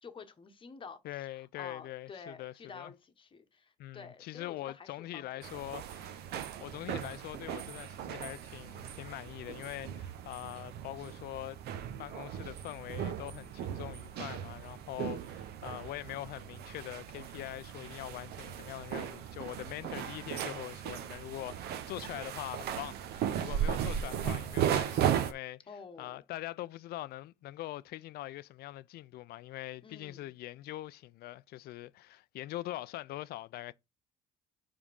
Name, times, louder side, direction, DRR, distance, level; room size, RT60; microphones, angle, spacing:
voice 1, 0.0-5.3 19.8-20.1 23.6-24.0 25.7-26.2 29.8-30.3, left 5 dB, 30° left, 1.1 m, -50 dB
voice 2, 1.0-2.9 3.8-6.2 6.6-11.6 12.0-25.6 26.0-33.7, left 15 dB, 70° left, 0.4 m, -43 dB
sound 1, 5.4-25.3, right 9 dB, 75° right, 0.8 m, -37 dB
5.0 x 3.6 x 5.3 m
cardioid pair, 110°, 17 cm